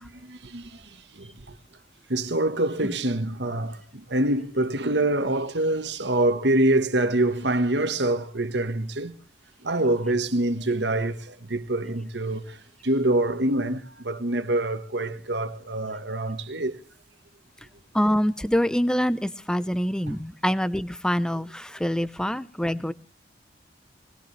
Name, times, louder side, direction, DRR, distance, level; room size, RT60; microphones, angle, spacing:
voice 1, 0.0-1.5 2.1-9.2 9.6-16.8 20.0-20.2 21.8-21.9, right 1 dB, 75° right, 1.5 m, -26 dB
voice 2, 17.9-22.9, equal, 5° left, 0.7 m, -25 dB
21.0 x 20.0 x 3.3 m
head